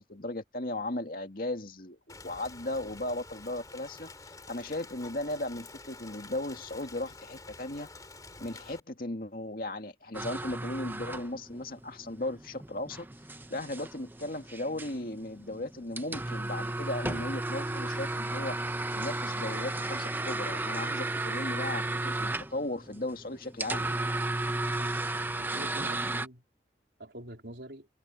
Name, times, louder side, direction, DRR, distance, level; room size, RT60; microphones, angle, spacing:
voice 1, 0.0-4.1 4.5-7.9 8.4-13.1 13.5-18.6 18.9-23.9, left 1 dB, 50° left, 2.2 m, -36 dB
Rain, 2.1-8.8, left 3 dB, 20° left, 3.0 m, -49 dB
sound 1, 10.1-26.3, right 2 dB, 10° right, 0.7 m, -34 dB
voice 2, 24.7-26.4 27.0-27.9, right 1 dB, 70° right, 3.8 m, -46 dB
head